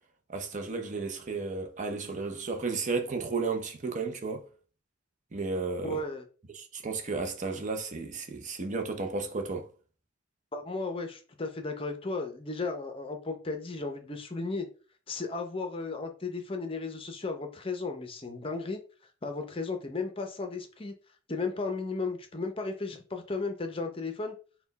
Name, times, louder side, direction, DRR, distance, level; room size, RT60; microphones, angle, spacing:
voice 1, 0.3-4.5 5.3-6.0 6.5-9.7, right 4 dB, 40° right, 0.6 m, -33 dB
voice 2, 5.8-6.2 10.5-14.7 15.1-18.8 19.2-20.9 21.3-24.3, left 3 dB, 25° left, 0.6 m, -35 dB
4.2 x 2.3 x 3.9 m
head